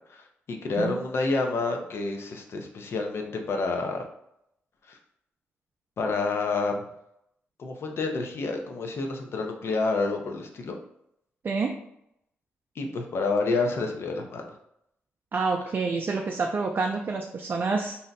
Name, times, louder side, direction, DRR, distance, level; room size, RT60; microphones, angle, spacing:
voice 1, 0.1-4.0 4.9-5.0 6.0-6.9 7.6-10.8 12.8-14.5, left 3 dB, 60° left, 3 dB, 0.6 m, -29 dB
voice 2, 15.3-18.0, right 4 dB, 45° right, 2 dB, 0.4 m, -28 dB
2.6 x 2.1 x 3.9 m, 0.77 s
supercardioid pair, 50°, 5 cm